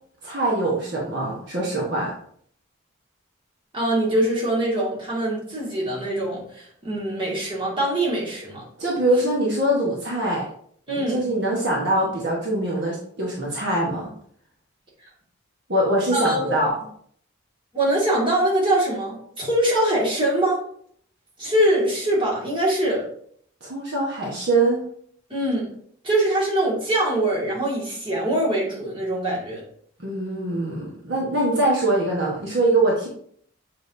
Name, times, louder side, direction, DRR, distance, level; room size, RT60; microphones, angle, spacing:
voice 1, 0.2-2.1 8.8-10.4 10.9-14.1 15.7-16.7 23.6-24.8 30.0-33.1, right 1 dB, 55° right, -4 dB, 1.4 m, -23 dB
voice 2, 3.7-8.6 10.9-11.3 16.1-16.5 17.7-20.6 21.4-23.0 25.3-25.7 26.0-29.6, right 1 dB, 25° right, -5 dB, 2.2 m, -23 dB
7.2 x 5.1 x 2.8 m, 0.62 s
head